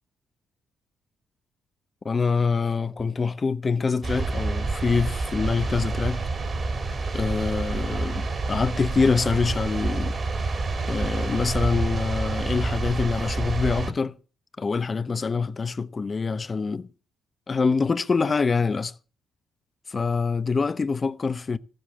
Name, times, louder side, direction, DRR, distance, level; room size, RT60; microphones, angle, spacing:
voice 1, 2.0-6.2 7.1-10.2 10.9-14.2 14.6-16.9 17.5-18.9 19.9-21.6, left 4 dB, 35° left, 0.9 m, -25 dB
sound 1, 4.0-13.9, right 3 dB, 40° right, 3.0 m, -28 dB
15.5 x 7.9 x 8.6 m
cardioid pair, 90°, 0 cm